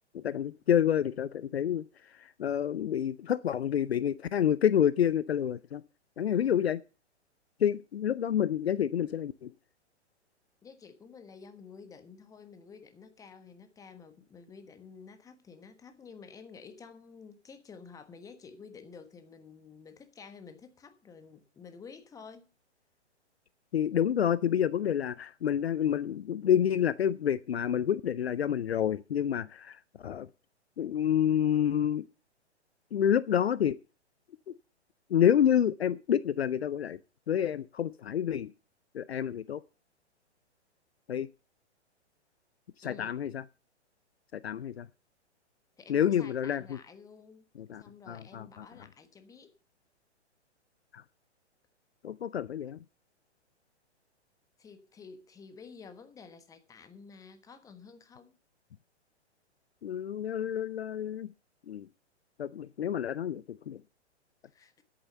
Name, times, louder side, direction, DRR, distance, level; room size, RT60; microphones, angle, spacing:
voice 1, 0.1-1.8 2.2-5.8 6.2-6.8 7.6-9.5 23.7-30.3 30.8-32.0 32.9-33.8 34.5-34.6 35.1-37.0 37.3-38.5 38.9-39.6 41.1-41.3 42.8-43.4 44.3-44.9 45.9-46.8 47.7-48.7 50.9-51.0 52.0-52.8 59.8-61.3 61.7-61.9 62.4-63.8, left 9 dB, 60° left, 0.6 m, -28 dB
voice 2, 6.3-6.6 10.6-22.5 42.8-43.1 45.8-47.4 47.8-49.5 54.6-58.4 64.4-64.8, left 5 dB, 10° left, 1.3 m, -51 dB
10.0 x 8.9 x 6.7 m
figure-of-eight pair, 115°, 35 cm